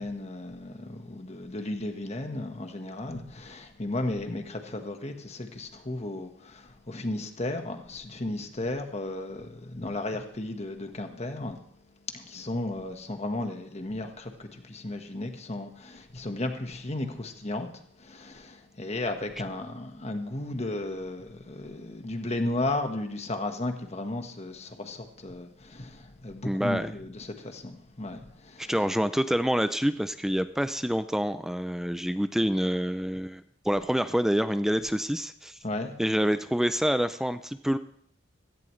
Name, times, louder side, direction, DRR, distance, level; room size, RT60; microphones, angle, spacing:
voice 1, 0.0-11.6 12.1-28.7 35.6-35.9, left 2 dB, 35° left, 1.4 m, -34 dB
voice 2, 26.4-26.9 28.6-35.6 36.0-37.8, equal, ahead, 0.4 m, -27 dB
16.5 x 15.0 x 3.2 m
head